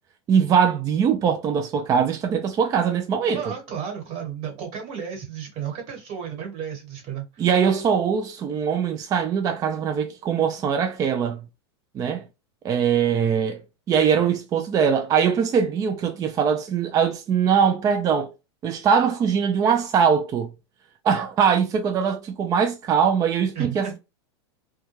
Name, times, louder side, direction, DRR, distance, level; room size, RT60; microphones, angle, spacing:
voice 1, 0.3-3.4 7.4-11.4 11.9-12.2 12.6-13.6 13.9-18.3 18.6-20.5 21.0-24.0, right 7 dB, 25° right, 0.4 m, -22 dB
voice 2, 3.3-7.4 23.5-24.0, right 8 dB, 45° right, 1.4 m, -33 dB
2.2 x 2.2 x 3.0 m
hypercardioid pair, 120°, 14 cm